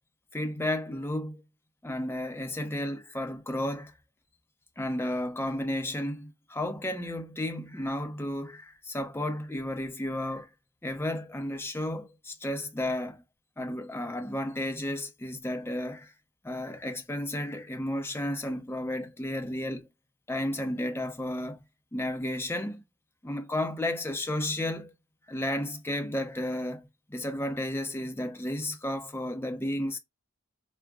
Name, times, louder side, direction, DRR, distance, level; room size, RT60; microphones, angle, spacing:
voice 1, 0.3-1.4 1.8-3.9 4.8-10.5 10.8-13.2 13.6-16.1 16.4-19.9 20.3-21.6 21.9-22.8 23.2-24.9 25.3-30.0, left 1 dB, 10° left, 0.6 m, -33 dB
4.7 x 2.2 x 3.4 m
head